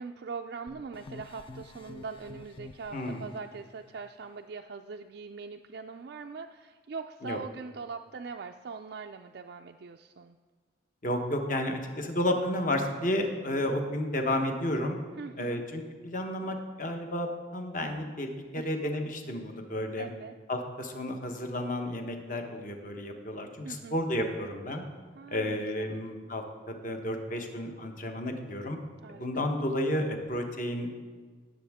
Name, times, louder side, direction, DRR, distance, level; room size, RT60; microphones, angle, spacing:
voice 1, 0.0-10.4 15.2-15.6 18.5-18.7 20.0-20.4 23.6-24.0 25.2-26.0 29.0-29.5, right 5 dB, 55° right, 3 dB, 0.3 m, -42 dB
sound 1, 0.7-3.4, left 2 dB, 25° left, 0.4 m, -48 dB
voice 2, 2.9-3.3 7.2-7.4 11.0-15.0 15.4-20.1 20.5-24.8 25.3-28.8 29.1-30.9, left 1 dB, 40° left, 4 dB, 1.1 m, -32 dB
18.5 x 7.3 x 3.6 m, 1.5 s
head